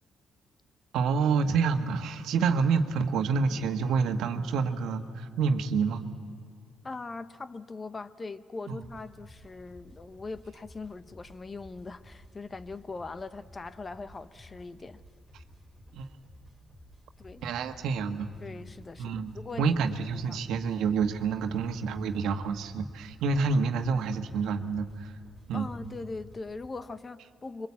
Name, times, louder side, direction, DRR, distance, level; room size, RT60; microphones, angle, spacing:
voice 1, 0.9-6.1 8.7-8.8 15.9-16.1 17.4-18.3 19.0-25.1 25.5-25.7, right 5 dB, 85° right, 1.4 m, -28 dB
voice 2, 6.8-15.0 17.2-17.5 18.4-19.8 20.3-20.4 25.5-27.7, left 3 dB, 30° left, 0.9 m, -41 dB
sound 1, 8.8-26.7, equal, 5° left, 3.1 m, -54 dB
24.5 x 23.5 x 8.5 m
cardioid pair, 90°, 0 cm